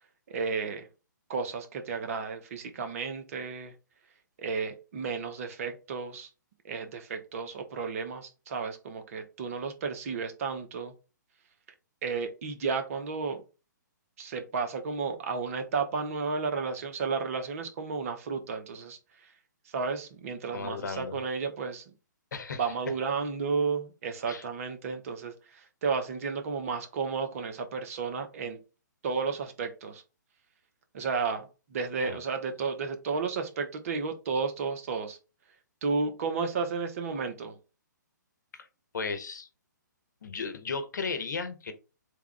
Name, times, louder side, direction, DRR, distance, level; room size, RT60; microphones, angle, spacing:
voice 1, 0.3-0.9 1.3-3.7 4.4-6.3 6.6-10.9 12.0-13.4 14.2-19.3 19.7-21.8 22.6-28.6 29.0-30.0 30.9-35.2 35.8-37.6, right 5 dB, 45° right, 7 dB, 0.9 m, -32 dB
voice 2, 20.5-21.2 22.3-22.6 24.3-24.4 32.0-32.2 38.5-38.7 38.9-39.5 40.2-41.7, left 4 dB, 65° left, 9 dB, 0.9 m, -35 dB
3.5 x 3.4 x 3.3 m, 0.31 s
figure-of-eight pair, 130°, 10 cm